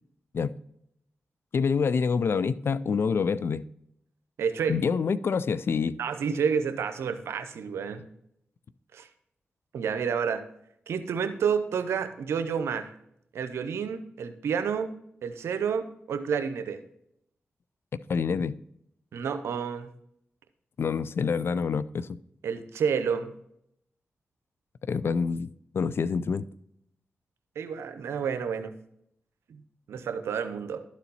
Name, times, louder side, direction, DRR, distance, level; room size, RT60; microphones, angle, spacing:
voice 1, 1.5-3.6 4.7-6.0 18.1-18.6 20.8-22.2 24.9-26.5, left 5 dB, 65° left, 0.4 m, -27 dB
voice 2, 4.4-4.8 6.0-8.0 8.9-9.1 9.7-10.4 10.9-12.9 13.3-14.9 15.2-16.8 19.1-19.9 22.4-23.3 27.6-28.7 29.5-29.6 29.9-30.8, right 6 dB, 85° right, 0.7 m, -29 dB
12.0 x 4.2 x 4.1 m
supercardioid pair, 40°, 4 cm